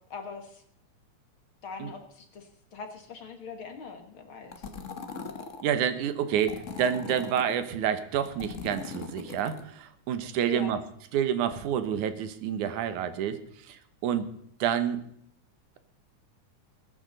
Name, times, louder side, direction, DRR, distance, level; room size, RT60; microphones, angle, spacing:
voice 1, 0.1-0.6 1.6-4.7 10.5-10.7, left 5 dB, 50° left, 6 dB, 1.9 m, -42 dB
sound 1, 4.5-5.6 6.4-7.5 8.1-9.7, left 5 dB, 75° left, 0.7 m, -40 dB
voice 2, 5.6-10.8 11.1-13.4 13.7-14.3 14.6-15.0, right 9 dB, 85° right, 11 dB, 2.5 m, -28 dB
20.5 x 10.0 x 4.0 m, 0.71 s
omnidirectional pair, 3.4 m